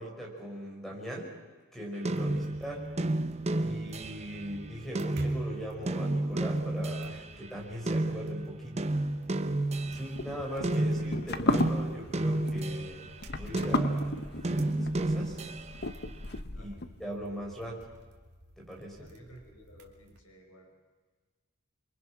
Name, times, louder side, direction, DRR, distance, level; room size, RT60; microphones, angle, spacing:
voice 1, 0.0-1.3 1.7-2.9 3.6-8.8 9.9-15.4 16.5-17.9 18.6-19.1, equal, ahead, -1 dB, 5.1 m, -40 dB
sound 1, 2.0-7.3 7.9-13.1 13.5-15.9, right 1 dB, 30° right, 0.9 m, -31 dB
sound 2, 2.1-20.2, right 1 dB, 50° right, 2.9 m, -53 dB
sound 3, 9.8-16.9, left 2 dB, 50° left, 1.1 m, -34 dB
voice 2, 19.0-20.7, right 1 dB, 80° left, 3 dB, 4.9 m, -52 dB
29.0 x 24.0 x 6.0 m, 1.4 s
head